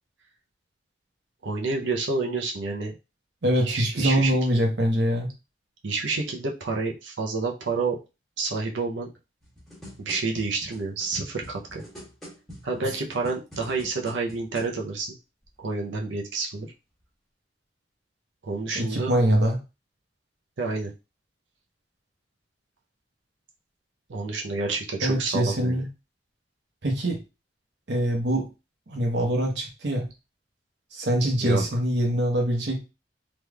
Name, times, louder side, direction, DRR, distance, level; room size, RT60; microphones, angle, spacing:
voice 1, 1.4-2.9 3.7-4.3 5.8-8.0 8.4-9.1 10.0-11.8 12.6-15.1 15.6-16.7 18.4-19.1 20.6-20.9 24.1-25.8 31.4-31.6, right 3 dB, 90° right, 0 dB, 0.7 m, -29 dB
voice 2, 3.4-5.3 18.7-19.6 25.0-25.9 26.8-27.2 27.9-28.5 28.9-30.1 30.9-32.8, equal, 65° right, 2 dB, 1.0 m, -24 dB
sound 1, 9.4-14.7 15.4-15.5, equal, ahead, 1.3 m, -45 dB
3.4 x 3.0 x 2.3 m, 0.28 s
head